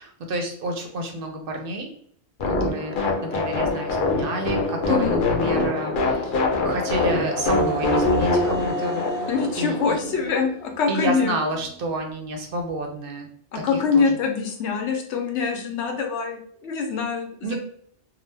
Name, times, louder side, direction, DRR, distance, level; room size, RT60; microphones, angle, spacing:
voice 1, 0.0-1.9 2.5-9.0 9.6-10.0 10.9-13.3 13.5-13.6 13.9-14.2 17.4-17.5, right 1 dB, 60° right, 3 dB, 0.7 m, -30 dB
sound 1, 2.4-9.8, left 2 dB, 55° left, 0.6 m, -24 dB
sound 2, 6.3-11.9, right 2 dB, 90° right, 1.0 m, -35 dB
voice 2, 9.3-11.4 13.5-17.6, left 5 dB, 85° left, 3 dB, 0.9 m, -24 dB
2.8 x 2.0 x 3.2 m, 0.63 s
omnidirectional pair, 1.1 m